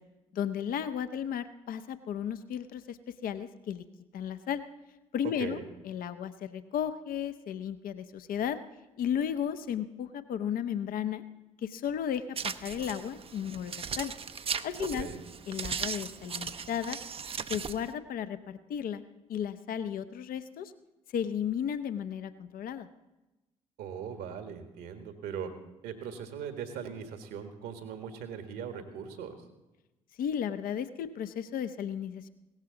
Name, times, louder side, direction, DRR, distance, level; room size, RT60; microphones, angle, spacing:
voice 1, 0.3-3.0 3.2-3.8 4.1-4.6 5.1-5.6 5.8-8.6 9.0-11.2 11.6-14.1 14.6-15.1 15.5-17.0 17.5-19.0 19.3-20.7 21.1-22.9 30.2-32.3, left 9 dB, 55° left, 11 dB, 0.8 m, -34 dB
sound 1, 12.4-17.9, right 6 dB, 35° right, 0.7 m, -37 dB
voice 2, 14.8-15.2 23.8-25.5 25.8-29.3, right 7 dB, 70° right, 7 dB, 1.6 m, -40 dB
17.0 x 14.0 x 3.9 m, 1.0 s
hypercardioid pair, 50°, 17 cm